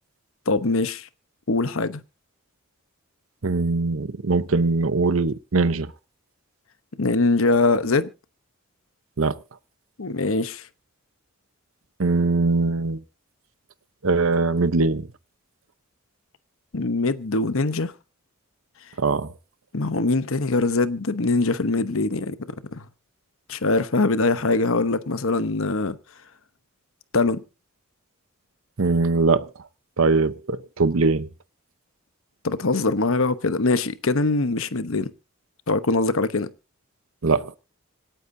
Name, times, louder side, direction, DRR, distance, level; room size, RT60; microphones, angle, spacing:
voice 1, 0.5-1.1 1.5-2.0 7.0-8.1 10.0-10.7 16.7-17.9 19.7-22.8 23.5-26.0 27.1-27.4 32.4-35.1 35.7-36.5, left 3 dB, 65° left, 0.9 m, -22 dB
voice 2, 3.4-5.9 9.2-9.4 12.0-13.0 14.0-15.1 19.0-19.3 28.8-29.5 30.0-31.3 37.2-37.5, right 3 dB, 65° right, 0.8 m, -21 dB
26.0 x 9.2 x 2.7 m
head